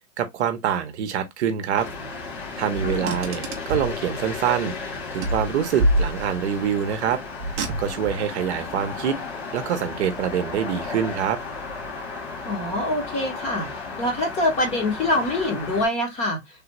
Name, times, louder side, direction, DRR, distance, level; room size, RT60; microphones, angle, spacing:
voice 1, 0.2-1.9 2.6-4.8 5.1-7.2 7.8-9.2 9.5-11.4, right 9 dB, 55° right, 0.7 m, -25 dB
sound 1, 1.8-15.9, left 4 dB, 55° left, 1.5 m, -34 dB
Car, 2.7-4.0 5.2-6.5 7.4-8.2, right 1 dB, 25° right, 0.4 m, -26 dB
voice 2, 2.8-3.2 12.4-13.7 14.0-16.4, left 1 dB, 15° left, 0.8 m, -25 dB
3.3 x 2.4 x 2.9 m
hypercardioid pair, 150°, 40 cm